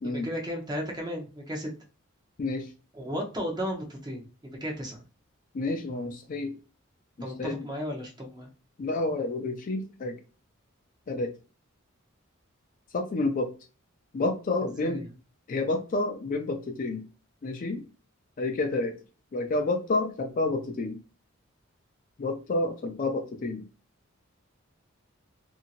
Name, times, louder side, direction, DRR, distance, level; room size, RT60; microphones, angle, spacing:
voice 1, 0.0-1.7 2.9-5.0 7.2-8.5 14.6-15.1, equal, 20° right, 0 dB, 0.7 m, -35 dB
voice 2, 5.5-6.6 7.2-7.6 8.8-10.2 11.1-11.3 12.9-13.5 14.1-15.0 15.5-17.0 17.4-17.8 18.4-19.0 19.3-21.0 22.2-23.6, left 2 dB, 40° left, 6 dB, 0.4 m, -29 dB
2.7 x 2.7 x 2.5 m, 0.33 s
head